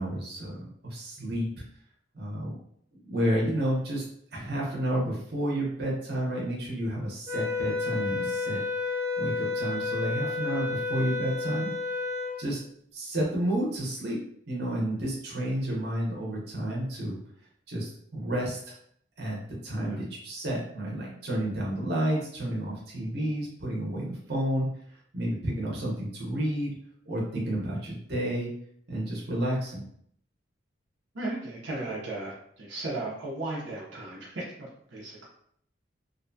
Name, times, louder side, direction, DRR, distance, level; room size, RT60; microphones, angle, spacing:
voice 1, 0.0-1.5 2.1-2.6 3.0-4.0 4.3-8.6 9.2-11.7 12.4-12.6 12.9-14.2 14.5-17.2 17.7-18.7 19.2-24.8 25.1-26.7 27.1-28.5 28.9-29.9, right 1 dB, 60° right, -4 dB, 0.9 m, -31 dB
sound 1, 7.3-12.4, left 4 dB, 15° right, 0.6 m, -31 dB
voice 2, 31.1-35.2, right 2 dB, 85° right, -5 dB, 0.7 m, -36 dB
2.7 x 2.2 x 2.6 m, 0.67 s
head